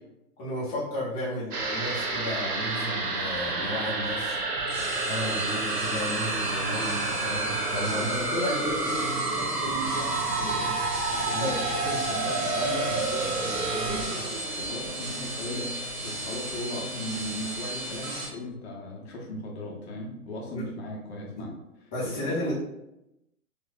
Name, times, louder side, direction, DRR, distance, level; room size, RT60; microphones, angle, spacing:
voice 1, 0.4-4.4 5.1-8.6 11.4-11.6 20.5-20.6 21.4-21.5 21.9-22.5, left 1 dB, 20° left, -6 dB, 1.0 m, -33 dB
sound 1, 1.5-16.2 16.5-16.6, right 3 dB, 70° right, 0.9 m, -31 dB
sound 2, 4.5-18.2, right 2 dB, 10° right, 0.9 m, -33 dB
voice 2, 7.9-10.7 11.1-11.5 11.8-14.3 14.6-15.8 16.0-21.5 22.0-22.5, left 1 dB, 45° left, -2 dB, 1.0 m, -36 dB
4.6 x 2.5 x 2.3 m, 0.89 s
hypercardioid pair, 130°, 46 cm